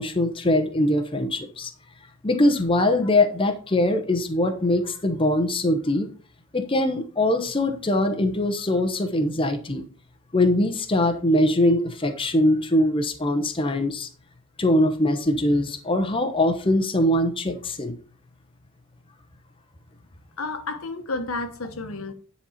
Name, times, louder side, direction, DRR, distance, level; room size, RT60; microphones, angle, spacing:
voice 1, 0.0-1.7 2.2-6.1 6.5-9.8 10.3-14.1 14.6-17.9, left 1 dB, 25° left, 0.9 m, -22 dB
voice 2, 20.4-22.1, left 3 dB, 70° left, 1.1 m, -31 dB
10.0 x 4.2 x 5.7 m
head